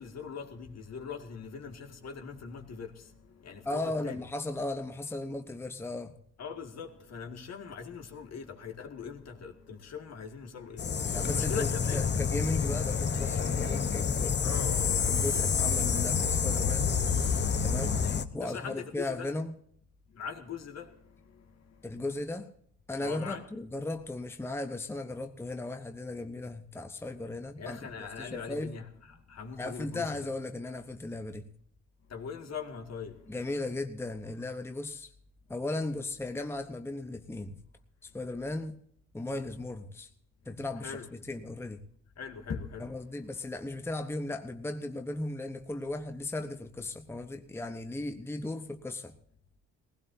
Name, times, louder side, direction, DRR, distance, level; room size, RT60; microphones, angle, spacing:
voice 1, 0.0-2.9 3.4-4.2 6.4-10.8 11.2-12.0 14.4-15.5 18.4-19.3 20.2-20.9 23.0-23.4 27.6-28.9 29.3-30.2 32.1-33.1 40.8-41.1 42.2-42.9, left 6 dB, 60° left, 2.0 m, -41 dB
voice 2, 3.6-6.2 11.1-16.9 17.6-18.1 18.3-19.6 21.8-22.5 22.9-28.7 29.6-31.5 33.3-35.1 35.5-37.6 38.0-38.8 39.1-40.1 40.5-41.8 42.8-49.1, left 2 dB, 10° left, 0.9 m, -36 dB
sound 1, 10.8-18.2, left 6 dB, 35° left, 0.9 m, -28 dB
19.0 x 16.5 x 2.7 m
cardioid pair, 90°, 30 cm